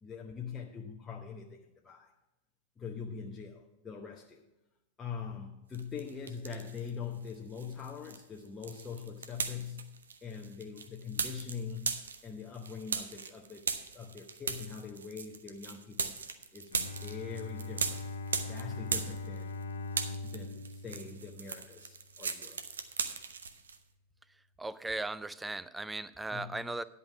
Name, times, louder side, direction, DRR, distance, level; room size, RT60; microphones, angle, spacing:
voice 1, 0.0-2.1 2.8-4.4 5.0-12.0 12.2-13.7 13.9-16.1 16.5-16.8 17.0-18.0 18.5-19.6 20.2-22.6 26.3-26.7, left 6 dB, 20° left, 0 dB, 0.8 m, -43 dB
sound 1, 5.7-6.9 7.2-19.6 19.9-23.8, right 5 dB, 70° right, 0.7 m, -38 dB
Bowed string instrument, 16.7-22.0, left 3 dB, 65° left, 0.6 m, -41 dB
voice 2, 24.6-26.8, right 2 dB, 5° right, 16 dB, 0.4 m, -37 dB
10.5 x 5.5 x 7.1 m, 0.95 s
figure-of-eight pair, 90°, 0 cm